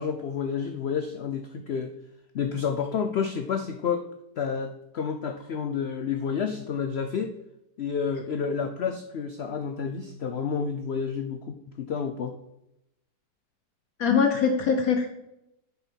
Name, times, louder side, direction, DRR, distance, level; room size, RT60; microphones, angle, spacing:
voice 1, 0.0-1.9 2.3-4.0 4.4-7.3 7.8-12.3 14.1-14.2, left 6 dB, 85° left, 6 dB, 0.5 m, -30 dB
voice 2, 14.0-15.1, left 6 dB, 65° left, 4 dB, 1.1 m, -22 dB
6.9 x 5.4 x 4.5 m, 0.86 s
omnidirectional pair, 1.8 m